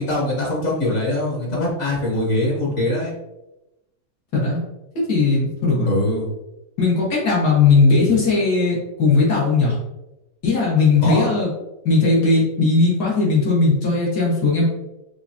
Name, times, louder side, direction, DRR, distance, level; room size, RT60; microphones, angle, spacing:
voice 1, 0.0-3.1 5.9-6.3 11.0-11.3, left 1 dB, 50° left, -3 dB, 1.3 m, -22 dB
voice 2, 5.1-5.9 6.8-9.8 10.4-11.5 11.8-14.6, left 3 dB, 85° left, -5 dB, 2.1 m, -18 dB
5.8 x 2.6 x 2.8 m, 0.94 s
omnidirectional pair, 1.7 m